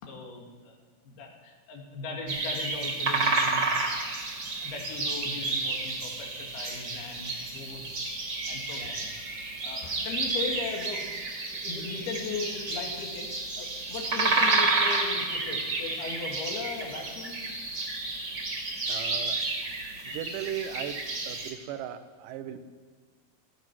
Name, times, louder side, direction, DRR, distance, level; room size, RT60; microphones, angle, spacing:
voice 1, 0.0-0.8 1.1-3.7 4.6-8.1 8.5-9.1 9.6-11.0 11.5-13.3 13.6-17.4, left 4 dB, 90° left, 1 dB, 4.0 m, -38 dB
sound 1, 2.3-21.5, right 3 dB, 35° right, 2.1 m, -30 dB
voice 2, 18.9-19.4 20.0-21.0 21.3-22.6, right 10 dB, 70° right, 10 dB, 2.2 m, -37 dB
15.0 x 14.5 x 6.0 m, 1.5 s
omnidirectional pair, 4.3 m